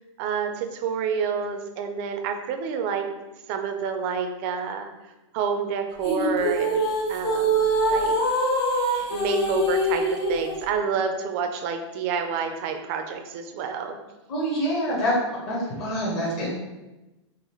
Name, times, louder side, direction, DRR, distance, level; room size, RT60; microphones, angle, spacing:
voice 1, 0.2-3.0 3.5-4.9 5.3-8.2 9.1-14.0, right 6 dB, 30° right, 5 dB, 0.4 m, -28 dB
sound 1, 6.0-10.6, right 1 dB, 55° left, 1.4 m, -24 dB
voice 2, 14.3-15.1 15.5-16.5, equal, 40° left, -8 dB, 1.2 m, -26 dB
3.9 x 2.9 x 3.0 m, 1.0 s
hypercardioid pair, 155°, 15 cm